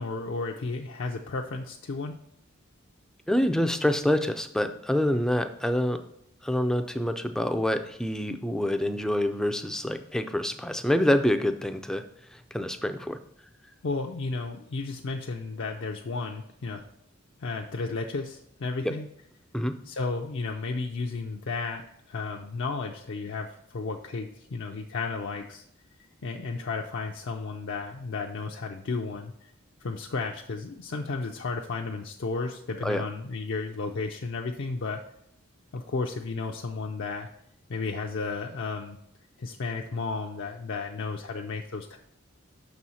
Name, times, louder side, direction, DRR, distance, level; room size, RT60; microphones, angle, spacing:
voice 1, 0.0-2.2 13.8-16.8 17.4-19.1 19.8-25.6 26.2-29.5 29.8-35.0 35.7-37.3 37.7-39.0 39.4-42.0, left 4 dB, 60° left, 2 dB, 0.5 m, -33 dB
voice 2, 3.3-6.0 6.4-12.0 12.3-13.2 18.8-18.9 19.5-19.7 32.8-33.0, left 1 dB, 5° left, 8 dB, 0.4 m, -26 dB
6.2 x 4.2 x 6.1 m, 0.74 s
head